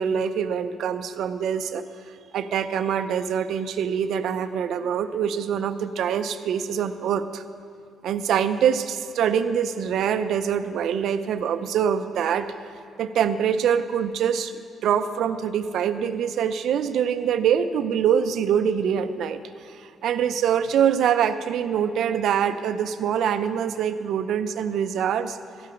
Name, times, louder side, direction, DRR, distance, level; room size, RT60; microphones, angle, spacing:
voice 1, 0.0-1.8 2.3-7.4 8.0-12.5 13.0-14.5 14.8-19.4 19.6-19.8 20.0-25.4, right 8 dB, 75° right, 10 dB, 0.5 m, -24 dB
13.0 x 8.5 x 5.2 m, 2.3 s
cardioid pair, 90°, 0 cm